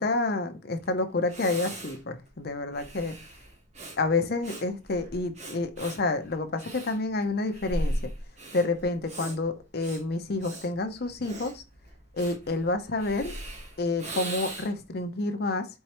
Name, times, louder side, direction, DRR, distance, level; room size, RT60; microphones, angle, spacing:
voice 1, 0.0-3.2 4.0-8.1 8.5-11.6 12.2-13.3 13.8-15.7, left 3 dB, 50° left, 0.6 m, -29 dB
Breathing, 0.8-0.9 1.3-14.9, right 1 dB, 35° right, 1.1 m, -38 dB
4.5 x 3.1 x 2.9 m
head